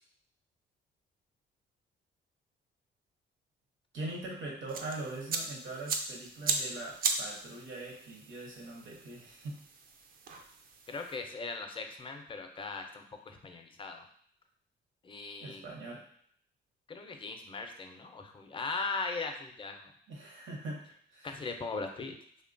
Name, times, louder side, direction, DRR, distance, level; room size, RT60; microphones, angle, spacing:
voice 1, 3.9-9.6 15.4-16.0 20.1-20.8 21.1-21.3, right 2 dB, 75° right, -2 dB, 0.9 m, -42 dB
sound 1, 4.7-11.2, right 4 dB, 50° right, 0.4 m, -37 dB
voice 2, 10.9-14.0 15.0-15.6 16.9-19.9 21.2-22.1, left 3 dB, 25° left, 4 dB, 0.4 m, -39 dB
3.0 x 2.2 x 2.5 m, 0.63 s
cardioid pair, 90°, 20 cm